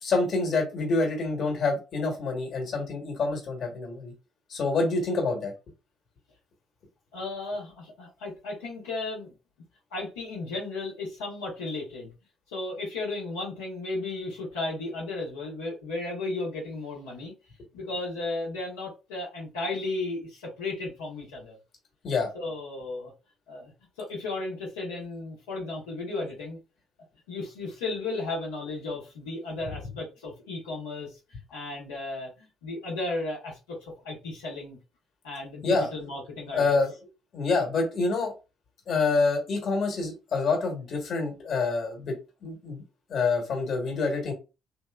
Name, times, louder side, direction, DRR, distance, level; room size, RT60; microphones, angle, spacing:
voice 1, 0.0-4.1 4.5-5.5 22.0-22.3 35.6-35.9 36.5-36.9 37.3-38.3 38.9-42.8 43.1-44.3, left 3 dB, 55° left, 1 dB, 1.3 m, -27 dB
voice 2, 7.1-9.3 9.9-12.1 12.5-17.3 17.7-21.6 22.3-23.1 23.5-23.7 24.0-26.6 27.3-34.8 35.2-36.8, left 2 dB, 80° left, -6 dB, 0.9 m, -34 dB
3.0 x 2.7 x 2.3 m, 0.28 s
hypercardioid pair, 50°, 0 cm